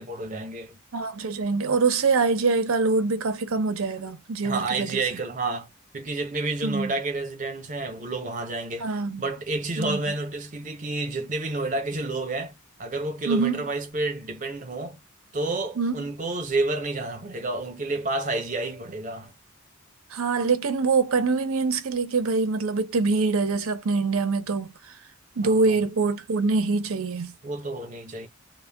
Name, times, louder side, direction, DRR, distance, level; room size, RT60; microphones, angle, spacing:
voice 1, 0.0-0.8 4.4-5.7 5.9-12.5 12.8-15.0 15.3-19.3 25.4-25.8 27.4-28.3, right 2 dB, 35° right, 0.7 m, -30 dB
voice 2, 0.9-4.9 6.6-6.9 8.8-9.2 9.8-10.0 13.3-13.6 15.8-16.0 20.1-24.7 25.4-27.3, right 4 dB, 85° right, 0.6 m, -24 dB
2.1 x 2.1 x 3.3 m
head